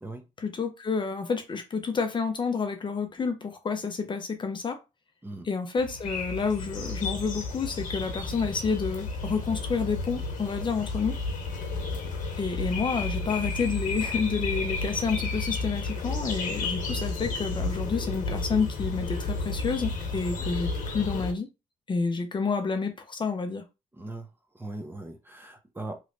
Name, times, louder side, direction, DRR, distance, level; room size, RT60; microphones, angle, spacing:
voice 1, 0.4-4.8 5.5-11.2 12.4-21.5 21.9-23.6, left 5 dB, 35° left, 0.7 m, -29 dB
sound 1, 5.8-21.3, left 3 dB, 65° left, 1.2 m, -32 dB
voice 2, 23.9-26.0, right 2 dB, 15° right, 0.8 m, -40 dB
3.1 x 3.1 x 2.6 m
cardioid pair, 85°, 14 cm